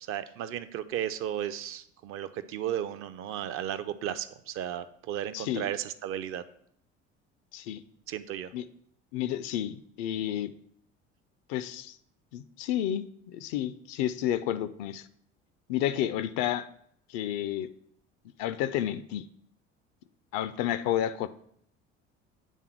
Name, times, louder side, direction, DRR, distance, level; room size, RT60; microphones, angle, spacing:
voice 1, 0.1-6.4 8.1-8.5, right 10 dB, 40° right, 13 dB, 0.4 m, -34 dB
voice 2, 5.3-5.7 7.5-7.8 8.5-8.6 9.1-10.5 11.5-12.0 12.3-15.0 15.7-16.7 17.1-17.7 18.4-19.2 20.3-21.3, left 11 dB, 50° left, 15 dB, 0.4 m, -31 dB
8.2 x 3.5 x 4.4 m, 0.66 s
figure-of-eight pair, 60°, 35 cm